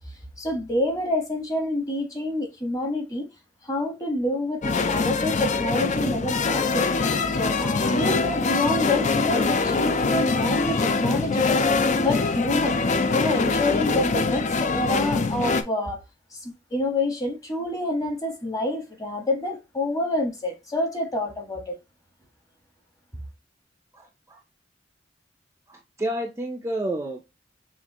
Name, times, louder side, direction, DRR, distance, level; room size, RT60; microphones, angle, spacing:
voice 1, 0.4-3.3 3.6-6.9 7.3-11.6 12.0-12.8 13.1-16.0 16.3-21.7, left 1 dB, 20° left, 1.4 m, -27 dB
sound 1, 4.6-15.6, left 4 dB, 40° left, 0.5 m, -23 dB
voice 2, 23.9-24.4 25.7-27.2, right 1 dB, 15° right, 0.6 m, -30 dB
6.6 x 2.5 x 3.0 m
head